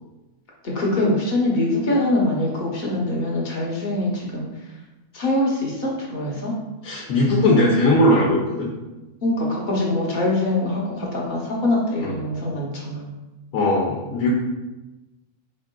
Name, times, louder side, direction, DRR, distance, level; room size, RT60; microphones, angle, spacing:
voice 1, 0.6-4.5 5.1-6.5 9.2-13.1, left 1 dB, 40° left, -3 dB, 0.9 m, -23 dB
voice 2, 6.8-8.7 12.0-12.2 13.5-14.3, left 1 dB, 85° left, -3 dB, 1.1 m, -19 dB
4.4 x 3.6 x 2.2 m, 1.1 s
omnidirectional pair, 1.5 m